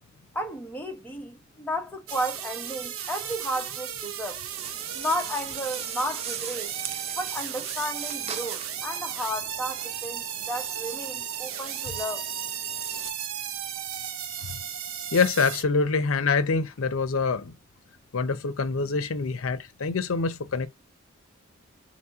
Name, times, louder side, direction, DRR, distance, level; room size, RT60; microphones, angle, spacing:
voice 1, 0.3-4.4 4.9-6.8 7.2-12.3, equal, 10° left, 0.8 m, -33 dB
sound 1, 2.1-15.6, right 9 dB, 85° right, 0.6 m, -35 dB
sound 2, 4.5-13.1, right 7 dB, 30° right, 0.4 m, -40 dB
voice 2, 15.1-17.5 18.1-20.7, left 4 dB, 80° left, 0.6 m, -25 dB
4.2 x 2.9 x 3.5 m
head